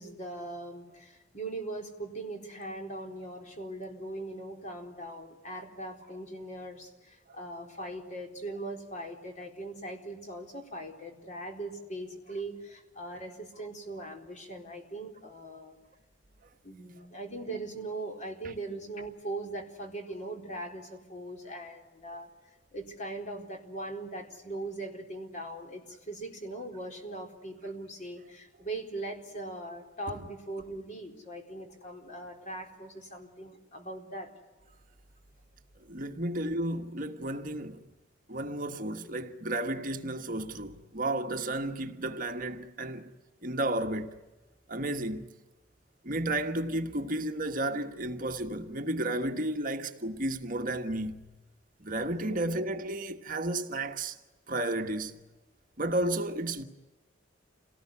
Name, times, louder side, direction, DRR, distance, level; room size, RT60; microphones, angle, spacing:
voice 1, 0.0-15.7 16.6-34.3 52.3-52.5, right 2 dB, 40° left, 4.2 m, -40 dB
voice 2, 35.9-37.8 38.3-43.1 43.4-44.1 44.7-45.3 46.0-51.3 51.8-54.2 54.5-55.2 55.8-56.6, right 1 dB, 45° right, 1.5 m, -32 dB
28.0 x 19.0 x 9.8 m
head